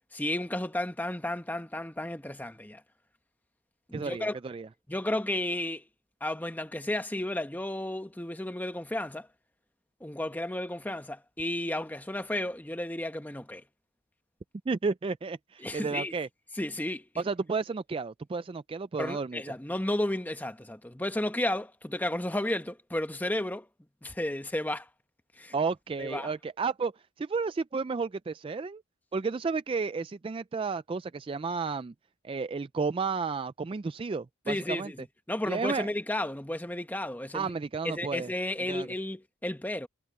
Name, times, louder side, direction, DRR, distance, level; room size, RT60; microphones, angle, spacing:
voice 1, 0.1-2.8 3.9-4.4 4.9-5.8 6.2-9.3 10.0-13.6 15.6-16.1 16.6-17.1 19.0-23.7 24.0-24.9 25.4-25.5 26.0-26.3 34.5-35.0 35.3-37.5 37.8-39.9, left 1 dB, 10° left, 1.1 m, -33 dB
voice 2, 3.9-4.7 14.7-16.3 17.2-19.4 25.5-28.8 29.1-31.9 32.2-34.9 35.5-35.9 37.3-38.3 38.6-38.9, right 4 dB, 25° right, 0.3 m, -32 dB
head